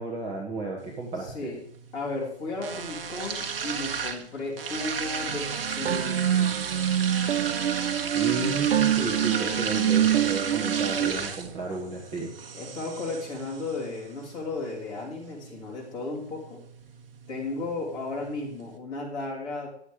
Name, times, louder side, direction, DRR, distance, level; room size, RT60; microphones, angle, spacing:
voice 1, 0.0-1.3 8.1-12.3, right 2 dB, 15° right, -3 dB, 1.3 m, -33 dB
sound 1, 0.8-18.8, right 6 dB, 55° right, 1.7 m, -35 dB
voice 2, 1.2-1.6 1.9-6.5 11.0-11.2 12.5-16.6 17.3-19.7, left 3 dB, 15° left, -3 dB, 2.5 m, -34 dB
sound 2, 5.3-11.1, right 11 dB, 80° right, 0.7 m, -26 dB
11.0 x 7.6 x 4.9 m, 0.65 s
hypercardioid pair, 165°, 33 cm